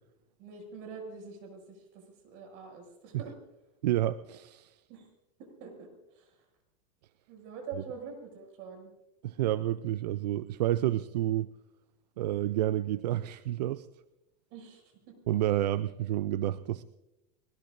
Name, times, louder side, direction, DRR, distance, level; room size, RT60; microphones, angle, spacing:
voice 1, 0.4-3.4 4.9-5.1 5.6-6.4 7.3-8.9 14.5-15.1, right 5 dB, 60° right, 3 dB, 6.8 m, -45 dB
voice 2, 3.8-4.7 9.2-11.5 12.2-13.9 15.3-16.8, right 13 dB, 85° right, 16 dB, 0.5 m, -29 dB
22.5 x 20.5 x 2.6 m, 0.93 s
supercardioid pair, 115°, 20 cm